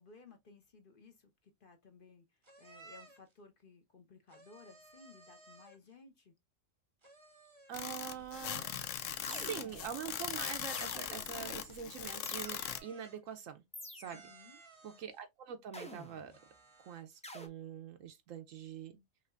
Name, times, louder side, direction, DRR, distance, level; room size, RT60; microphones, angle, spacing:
voice 1, 0.0-6.3 14.1-14.6, left 4 dB, 45° left, 1.0 m, -59 dB
sound 1, 2.4-3.3 4.3-5.9 7.0-7.9 8.6-9.6 10.2-11.4 12.2-13.4 14.0-15.2 16.3-17.2, right 4 dB, 25° right, 0.8 m, -59 dB
sound 2, 7.7-12.8, left 10 dB, 70° left, 0.9 m, -40 dB
voice 2, 7.7-8.7 9.3-13.6 13.9-14.3 14.8-16.4 16.8-19.0, right 8 dB, 75° right, 1.0 m, -44 dB
sound 3, 9.2-10.0 10.7-11.5 12.2-12.9 13.7-14.4 15.7-16.4 17.2-17.5, left 1 dB, 10° left, 0.5 m, -49 dB
5.6 x 2.8 x 2.4 m
omnidirectional pair, 1.4 m